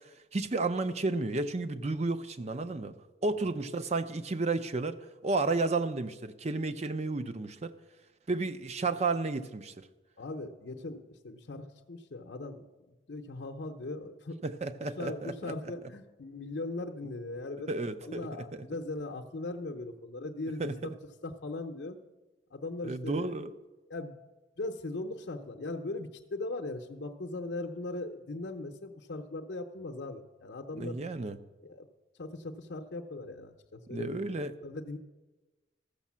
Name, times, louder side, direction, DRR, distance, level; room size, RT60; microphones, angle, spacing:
voice 1, 0.3-3.0 3.2-5.0 5.2-7.7 8.3-9.9 14.4-15.5 17.7-18.4 20.6-20.8 22.8-23.5 30.8-31.4 33.9-34.5, right 3 dB, 35° right, 0.6 m, -32 dB
voice 2, 10.2-14.4 15.0-17.7 18.0-22.0 22.5-23.5 23.9-24.2 24.6-31.0 31.6-31.9 32.2-35.0, left 2 dB, 65° left, 0.7 m, -39 dB
13.5 x 6.5 x 7.3 m
head